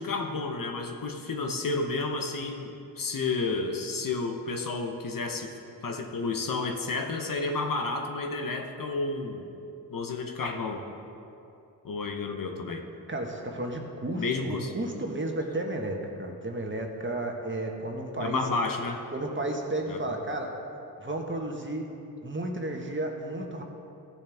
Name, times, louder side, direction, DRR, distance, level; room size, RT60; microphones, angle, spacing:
voice 1, 0.0-5.5 5.8-9.5 9.9-10.8 11.8-12.8 14.1-14.7 18.2-19.0 19.9-20.0, left 3 dB, 55° left, 4 dB, 1.1 m, -31 dB
voice 2, 13.1-18.4 19.1-20.5 21.0-21.9 22.2-23.6, right 1 dB, 30° right, 1 dB, 1.5 m, -33 dB
14.5 x 6.9 x 3.6 m, 2.7 s
cardioid pair, 50°, 40 cm